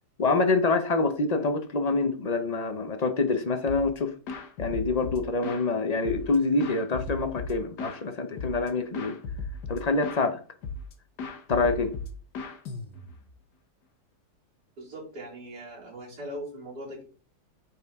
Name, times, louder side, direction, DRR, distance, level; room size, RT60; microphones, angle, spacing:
voice 1, 0.2-4.1 4.6-9.2 9.7-10.4 11.5-12.0, left 3 dB, 40° left, 0.6 m, -26 dB
sound 1, 3.7-4.0 4.3-5.7 6.0-8.0 8.4-8.7 8.9-10.3 10.6-10.9 11.2-13.3, left 3 dB, 80° left, 1.6 m, -36 dB
voice 2, 14.8-17.0, equal, 75° right, 4.1 m, -40 dB
8.9 x 4.5 x 3.6 m
omnidirectional pair, 1.7 m